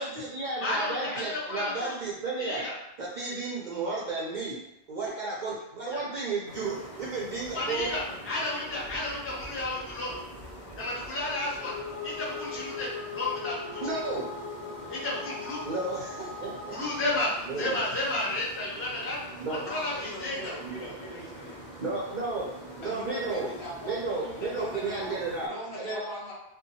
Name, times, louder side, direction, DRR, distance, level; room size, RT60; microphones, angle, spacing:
voice 1, 0.0-2.6 3.0-4.6 4.9-7.9 13.8-14.3 15.6-16.8 17.5-17.8 19.4-19.6 20.6-20.7 21.8-22.5 22.8-23.5 23.8-26.0, right 3 dB, 55° right, -5 dB, 0.5 m, -33 dB
voice 2, 0.6-1.9 2.4-2.7 5.9-6.0 7.5-10.2 10.8-11.7 12.0-12.9 13.1-14.0 14.9-15.6 16.7-17.3 17.6-19.2 19.5-20.5, left 2 dB, 15° left, -6 dB, 0.5 m, -32 dB
sound 1, 6.5-25.5, equal, 55° left, 1.1 m, -45 dB
sound 2, 11.5-17.3, left 5 dB, 85° left, 0.9 m, -40 dB
voice 3, 19.6-21.5 22.8-26.3, equal, 70° left, -6 dB, 1.2 m, -40 dB
2.6 x 2.2 x 2.7 m, 0.84 s
omnidirectional pair, 1.1 m